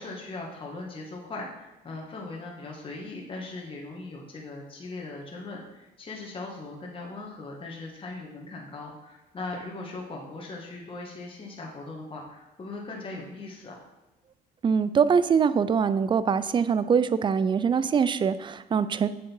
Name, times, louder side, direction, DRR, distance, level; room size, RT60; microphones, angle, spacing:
voice 1, 0.0-13.8, left 3 dB, 30° left, -1 dB, 1.7 m, -39 dB
voice 2, 14.6-19.1, right 6 dB, 30° right, 14 dB, 0.4 m, -23 dB
7.7 x 6.5 x 4.5 m, 1.0 s
cardioid pair, 110°, 17 cm